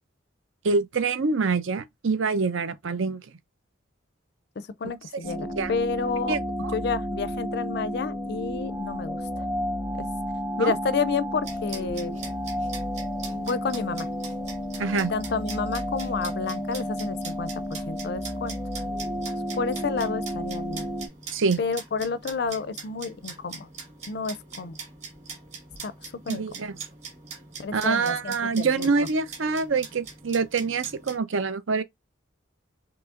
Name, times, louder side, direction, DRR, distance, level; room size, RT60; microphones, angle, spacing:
voice 1, 0.6-3.2 5.4-5.7 6.3-6.7 10.6-10.7 14.8-15.1 21.3-21.6 26.3-26.7 27.7-31.8, right 4 dB, 80° right, 0.6 m, -25 dB
voice 2, 4.6-6.4 6.7-9.2 10.0-10.1 10.6-12.2 13.3-14.1 14.9-18.5 19.6-20.9 21.6-23.7 24.1-24.7 25.8-25.9 26.3-26.4 27.6-28.9, left 5 dB, 55° left, 0.4 m, -30 dB
sound 1, 5.2-21.1, equal, 10° right, 0.8 m, -32 dB
sound 2, 11.4-31.2, right 4 dB, 35° right, 2.0 m, -43 dB
6.0 x 3.0 x 2.5 m
head